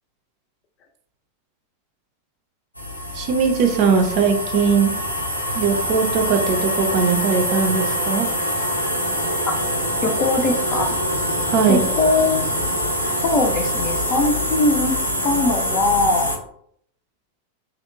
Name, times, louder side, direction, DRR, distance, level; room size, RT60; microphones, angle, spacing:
sound 1, 2.8-16.4, equal, 90° left, 0.5 m, -24 dB
voice 1, 3.1-5.0 5.5-8.3 11.4-11.9, right 5 dB, 45° right, 4 dB, 0.4 m, -19 dB
voice 2, 10.0-11.0 11.7-12.5 13.2-14.9 15.2-16.3, left 2 dB, 35° left, 4 dB, 0.5 m, -21 dB
2.8 x 2.1 x 2.5 m, 0.67 s
figure-of-eight pair, 90°, 0 cm